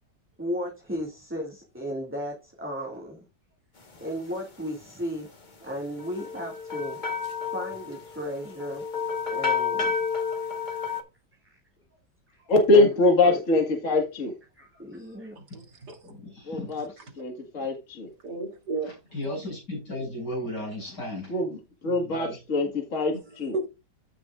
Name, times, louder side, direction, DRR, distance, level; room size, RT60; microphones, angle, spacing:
voice 1, 0.4-3.2 4.0-5.3 5.6-7.0 7.5-8.9 9.3-9.9 10.4-10.5 10.9-11.0 11.4-11.5 12.3-12.5 12.7-12.9 13.2-13.4 14.6-15.4, equal, 5° right, 2.1 m, -35 dB
sound 1, 6.0-11.0, left 6 dB, 30° left, 1.4 m, -30 dB
voice 2, 12.5-14.4 16.5-16.9 17.2-18.1 21.3-23.5, left 2 dB, 45° left, 2.0 m, -23 dB
voice 3, 15.4-16.1 16.8-16.9 18.2-18.9 23.5-23.7, right 3 dB, 70° right, 3.5 m, -33 dB
voice 4, 16.0-16.7 17.6-17.7 18.8-21.4 21.8-22.4, left 1 dB, 70° left, 7.4 m, -35 dB
14.5 x 6.0 x 2.4 m
omnidirectional pair, 1.9 m